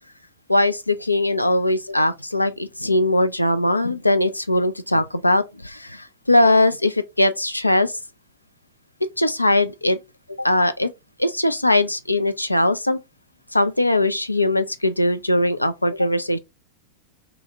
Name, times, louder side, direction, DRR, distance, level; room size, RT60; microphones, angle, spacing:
voice 1, 0.5-8.0 9.2-10.0 10.3-10.9 11.2-13.0 13.5-16.4, left 1 dB, 85° left, 0.3 m, -20 dB
2.7 x 2.7 x 3.3 m
figure-of-eight pair, 90°, 0 cm